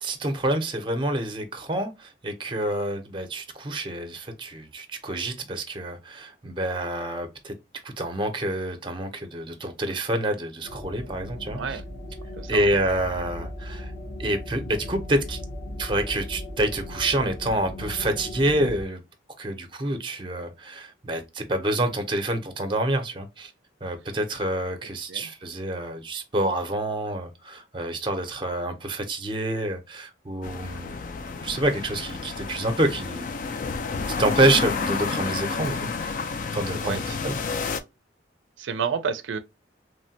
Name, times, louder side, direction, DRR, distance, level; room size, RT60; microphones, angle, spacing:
voice 1, 0.0-7.5 7.8-11.8 12.5-13.9 14.2-15.4 15.8-19.0 19.4-23.5 23.8-33.3 34.2-36.2 36.5-37.4, right 1 dB, 25° right, 0.5 m, -27 dB
sound 1, 10.6-18.8, left 1 dB, 80° left, 1.1 m, -37 dB
voice 2, 12.4-12.7 25.1-25.3 34.5-34.6 36.8-37.0 38.6-39.4, right 6 dB, 85° right, 0.4 m, -30 dB
sound 2, 30.4-37.8, left 4 dB, 45° left, 0.3 m, -30 dB
3.1 x 2.1 x 2.7 m
head